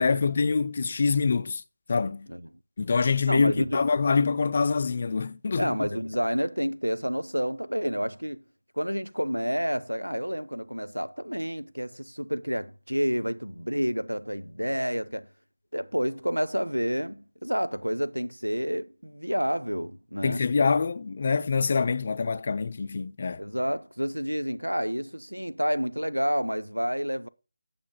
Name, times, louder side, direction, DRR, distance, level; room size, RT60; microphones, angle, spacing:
voice 1, 0.0-1.6 1.9-2.3 2.8-5.9 20.2-23.4, left 4 dB, 40° left, 0.5 m, -25 dB
voice 2, 3.3-3.8 5.6-8.4 8.8-15.3 15.7-20.4 23.4-27.3, equal, 85° right, 0.8 m, -29 dB
9.7 x 6.9 x 5.6 m
figure-of-eight pair, 160°, 0 cm